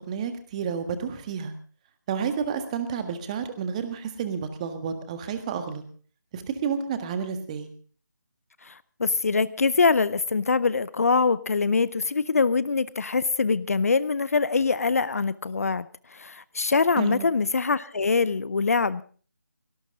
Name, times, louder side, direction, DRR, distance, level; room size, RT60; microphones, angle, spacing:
voice 1, 0.1-1.5 2.1-5.8 6.3-7.7 17.0-17.3, right 6 dB, 20° right, 9 dB, 1.6 m, -30 dB
voice 2, 8.6-19.0, left 4 dB, 50° left, 18 dB, 0.7 m, -24 dB
17.5 x 17.5 x 3.7 m, 0.41 s
figure-of-eight pair, 155°, 10 cm